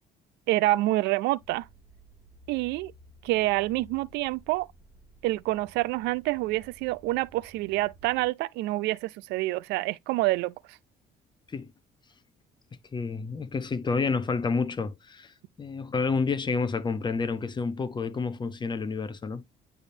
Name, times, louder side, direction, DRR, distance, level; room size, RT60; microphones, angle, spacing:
voice 1, 0.5-1.7 2.5-2.9 3.2-4.7 5.2-10.8, right 18 dB, 90° right, 0.4 m, -27 dB
sound 1, 1.4-8.3, equal, 15° right, 2.1 m, -55 dB
voice 2, 12.9-19.4, left 4 dB, 25° left, 0.9 m, -29 dB
10.0 x 3.5 x 2.7 m
cardioid pair, 110°, 17 cm